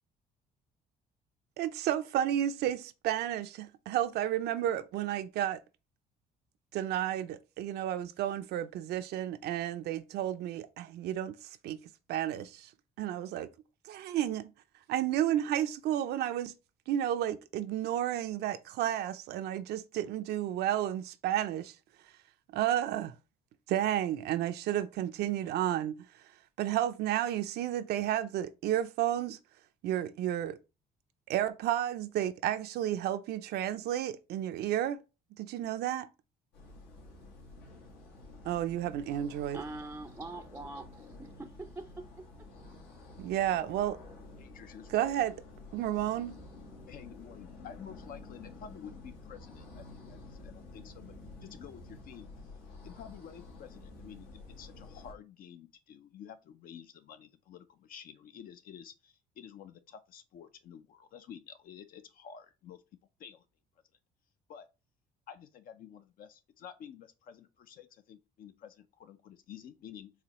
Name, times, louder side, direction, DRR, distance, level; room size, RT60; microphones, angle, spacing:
voice 1, 1.6-5.6 6.7-11.8 12.1-12.7 13.0-13.5 13.9-14.5 14.9-16.5 16.9-21.7 22.5-23.1 23.7-25.9 26.6-29.4 29.8-30.6 31.3-35.0 35.4-36.1 38.4-39.6 43.2-44.0 44.9-45.4 45.7-46.4, right 11 dB, 75° right, 0.5 m, -32 dB
sound 1, 36.5-55.1, left 2 dB, 85° left, 1.8 m, -50 dB
voice 2, 39.5-42.5, right 2 dB, 10° right, 0.4 m, -44 dB
voice 3, 44.4-45.2 46.9-51.1 51.4-52.3 52.8-62.8 63.2-63.4 64.5-64.7 65.3-70.1, left 8 dB, 60° left, 0.5 m, -50 dB
4.8 x 3.3 x 2.9 m
cardioid pair, 110°, 17 cm